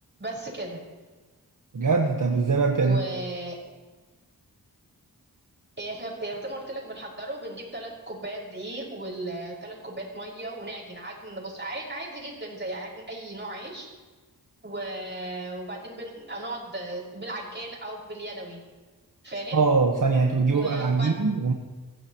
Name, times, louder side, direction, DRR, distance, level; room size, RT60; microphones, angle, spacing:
voice 1, 0.2-0.8 2.8-3.6 5.8-13.9 14.6-18.6 19.2-19.6 20.5-21.1, right 1 dB, 30° right, -4 dB, 5.9 m, -36 dB
voice 2, 1.7-3.0 19.5-21.5, right 4 dB, 55° right, 1 dB, 1.4 m, -22 dB
23.5 x 15.5 x 3.1 m, 1.3 s
wide cardioid pair, 65°, 37 cm